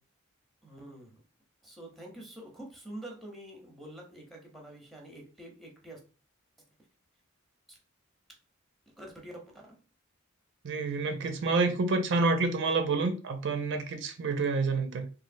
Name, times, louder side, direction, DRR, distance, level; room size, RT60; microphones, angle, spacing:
voice 1, 0.6-1.2 1.6-6.0 7.7-7.8 9.0-9.6, right 1 dB, ahead, 0.7 m, -46 dB
voice 2, 10.6-15.1, right 3 dB, 60° right, 0.5 m, -28 dB
3.1 x 2.5 x 2.5 m
head